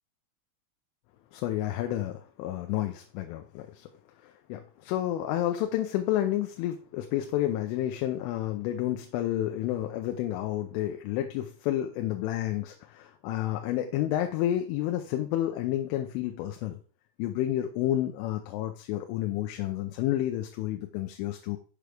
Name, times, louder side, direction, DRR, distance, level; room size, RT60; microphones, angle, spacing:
voice 1, 1.3-3.9 4.2-16.8 17.2-21.6, left 13 dB, 90° left, 5 dB, 3.1 m, -30 dB
6.8 x 6.2 x 3.4 m, 0.42 s
omnidirectional pair, 5.5 m